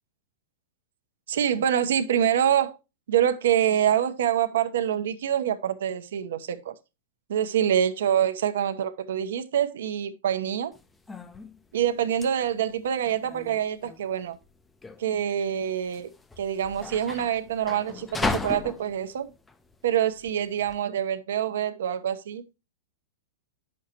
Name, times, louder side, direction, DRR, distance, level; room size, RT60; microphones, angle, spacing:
voice 1, 1.3-2.8 3.1-6.7 7.3-10.7 11.7-14.4 15.0-16.1 16.4-19.3 19.8-22.4, right 9 dB, 75° right, 0.9 m, -25 dB
sound 1, 10.7-20.8, left 3 dB, 5° left, 0.4 m, -36 dB
9.3 x 6.4 x 2.9 m
supercardioid pair, 170°, 0 cm